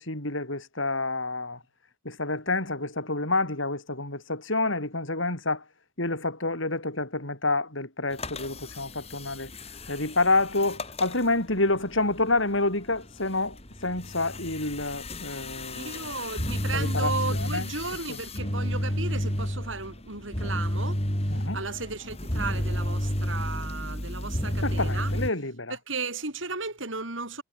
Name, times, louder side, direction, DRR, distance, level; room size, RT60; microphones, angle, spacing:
voice 1, 0.0-1.6 2.0-5.6 6.0-9.5 9.9-16.1 16.7-17.7 21.3-21.6 24.6-25.7, left 2 dB, 80° left, 7.8 m, -28 dB
sound 1, 8.1-25.3, equal, 30° left, 6.4 m, -32 dB
voice 2, 15.7-21.0 21.5-25.1 25.9-27.4, right 3 dB, 75° right, 7.0 m, -35 dB
head